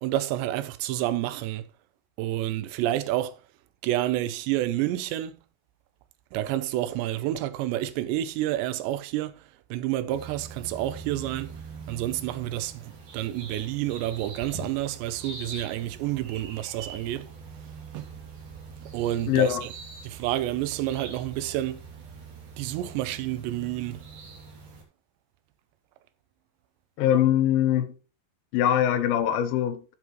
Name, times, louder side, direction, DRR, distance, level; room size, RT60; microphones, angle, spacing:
voice 1, 0.0-1.6 2.2-3.3 3.8-5.3 6.3-9.3 9.7-11.5 11.9-12.8 13.1-17.3 17.9-18.1 18.9-19.6 20.0-21.8 22.6-24.0, right 14 dB, 85° right, 2.9 m, -29 dB
sound 1, 10.1-24.8, right 4 dB, 50° right, 3.6 m, -43 dB
voice 2, 19.3-19.7 27.0-28.0 28.5-29.8, left 10 dB, 75° left, 2.2 m, -22 dB
12.5 x 7.6 x 3.1 m
omnidirectional pair, 5.0 m